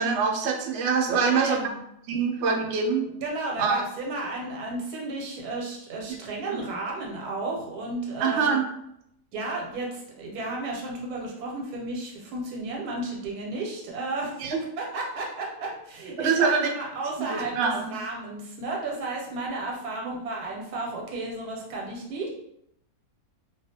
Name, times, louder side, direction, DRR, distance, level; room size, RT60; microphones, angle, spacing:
voice 1, 0.0-1.6 2.1-3.1 3.6-3.8 6.5-6.6 8.2-8.6 14.4-14.6 16.2-16.7 17.2-17.9 20.0-20.1, right 5 dB, 70° right, 1 dB, 0.7 m, -24 dB
voice 2, 1.1-1.8 2.6-2.7 3.1-8.5 9.3-14.5 14.8-22.3, right 2 dB, 90° right, -1 dB, 1.2 m, -33 dB
2.4 x 2.3 x 2.7 m, 0.77 s
omnidirectional pair, 1.6 m